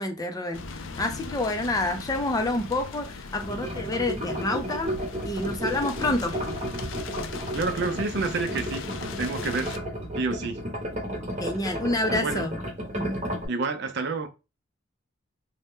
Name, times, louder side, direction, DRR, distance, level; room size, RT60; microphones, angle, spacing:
voice 1, 0.0-4.9 5.2-6.4 11.4-12.6 13.0-13.2, left 2 dB, 20° left, 0.5 m, -28 dB
sound 1, 0.5-9.8, left 4 dB, 75° left, 0.4 m, -39 dB
sound 2, 3.4-13.5, equal, 35° right, 1.0 m, -33 dB
voice 2, 7.5-9.8 10.2-10.6 12.1-12.5 13.5-14.3, right 3 dB, 60° right, 0.5 m, -29 dB
2.6 x 2.1 x 3.4 m
head